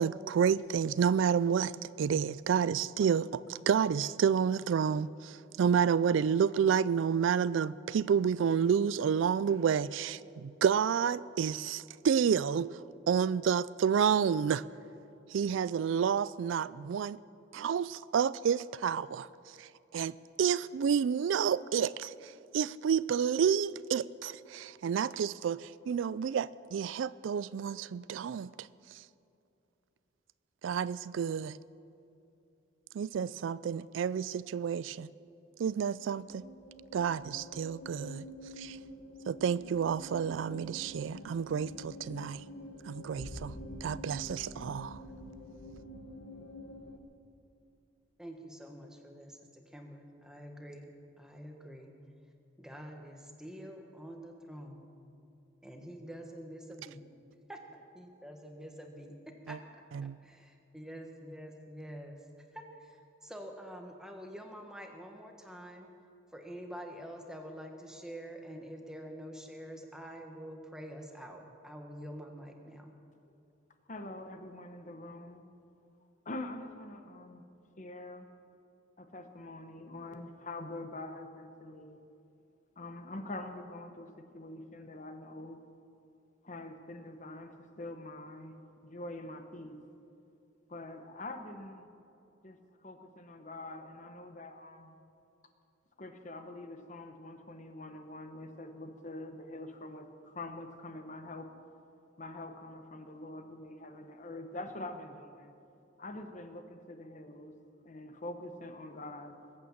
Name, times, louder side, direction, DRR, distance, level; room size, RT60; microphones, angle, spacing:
voice 1, 0.0-1.7 2.0-14.6 15.3-17.2 17.5-19.3 19.6-29.0 30.6-31.6 32.9-35.1 35.6-36.5 36.9-38.3 38.6-38.8 39.3-42.4 42.8-43.5 43.8-45.0 59.5-59.6 59.9-60.2, right 7 dB, 80° right, 19 dB, 0.3 m, -30 dB
sound 1, 35.7-47.0, equal, 70° left, 1.1 m, -47 dB
voice 2, 48.2-51.9 52.6-54.9 55.6-57.0 57.5-59.6 60.0-62.2 62.5-65.9 66.3-72.9, equal, 5° right, 3 dB, 1.4 m, -47 dB
voice 3, 73.9-75.4 76.2-77.5 77.8-78.3 79.0-82.0 82.8-85.6 86.4-88.5 88.8-89.8 90.7-91.9 92.4-94.9 96.0-101.5 102.2-105.5 106.0-107.5 107.8-109.4, left 2 dB, 40° left, 7 dB, 1.0 m, -44 dB
21.0 x 8.6 x 7.2 m, 2.7 s
head